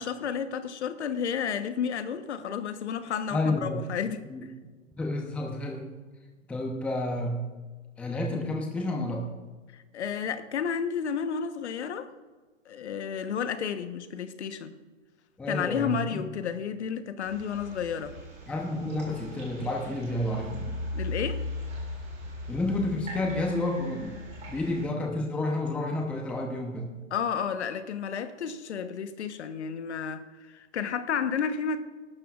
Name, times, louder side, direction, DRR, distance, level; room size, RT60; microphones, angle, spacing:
voice 1, 0.0-4.5 9.7-12.1 12.7-14.7 15.5-18.2 20.9-21.4 27.1-31.8, left 7 dB, 60° left, 1.2 m, -32 dB
voice 2, 3.3-3.8 4.3-4.4 5.0-5.9 6.5-7.4 8.0-9.2 15.4-16.3 18.5-20.7 22.5-24.2 24.5-26.9, left 2 dB, 5° left, 0.7 m, -30 dB
sound 1, 17.2-24.8, left 1 dB, 20° right, 3.4 m, -38 dB
21.0 x 12.0 x 2.4 m
hypercardioid pair, 150°, 38 cm